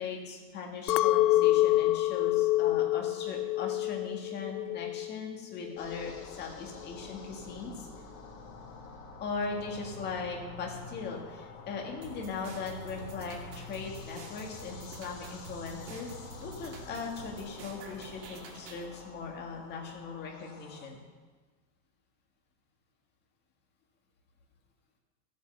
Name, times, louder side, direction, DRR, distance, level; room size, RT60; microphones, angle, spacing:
voice 1, 0.0-7.9 9.2-21.0, left 4 dB, 20° left, 1 dB, 1.8 m, -39 dB
Chink clink, 0.9-5.3 5.6-6.2, left 16 dB, 80° left, 0.6 m, -27 dB
sound 1, 5.8-20.9, left 4 dB, 55° left, 2.5 m, -47 dB
sound 2, 12.0-18.9, right 4 dB, 75° right, 2.5 m, -49 dB
13.0 x 8.4 x 6.7 m, 1.3 s
supercardioid pair, 170°, 49 cm